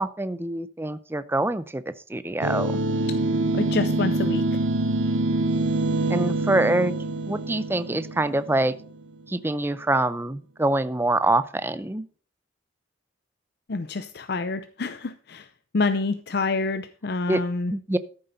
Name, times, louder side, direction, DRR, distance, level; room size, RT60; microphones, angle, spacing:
voice 1, 0.0-1.8 2.1-2.7 6.1-6.9 7.3-8.7 9.3-12.0 17.3-17.4 17.7-18.0, right 2 dB, 10° right, 14 dB, 0.5 m, -25 dB
sound 1, 2.4-9.0, right 2 dB, 85° right, 0.7 m, -25 dB
voice 2, 3.5-4.6 13.7-15.5 15.7-17.7, left 3 dB, 60° left, 10 dB, 0.6 m, -27 dB
13.5 x 7.7 x 4.0 m, 0.42 s
head